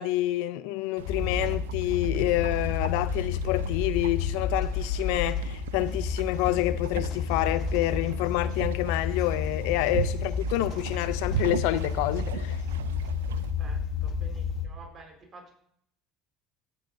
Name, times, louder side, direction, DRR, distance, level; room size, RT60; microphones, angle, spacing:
voice 1, 0.0-12.6, left 16 dB, 75° left, 0.4 m, -28 dB
sound 1, 1.0-13.5, right 11 dB, 90° right, 0.3 m, -38 dB
sound 2, 1.1-14.7, left 6 dB, 60° left, 1.0 m, -31 dB
voice 2, 12.9-15.5, right 3 dB, 40° right, 4.2 m, -51 dB
16.0 x 8.2 x 2.6 m
hypercardioid pair, 75°, 0 cm